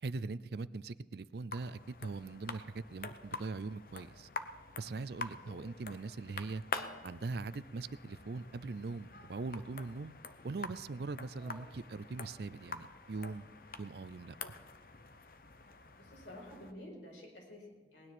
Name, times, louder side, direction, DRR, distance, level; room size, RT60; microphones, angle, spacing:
voice 1, 0.0-4.3 4.8-6.6 7.0-10.1 10.4-13.5 13.8-14.4, right 3 dB, 65° right, 17 dB, 0.5 m, -41 dB
sound 1, 1.5-16.7, left 4 dB, 55° left, 0.9 m, -47 dB
voice 2, 5.3-5.6 11.4-11.7 15.9-18.1, left 1 dB, 85° left, -1 dB, 5.0 m, -51 dB
19.0 x 9.9 x 6.1 m, 1.5 s
head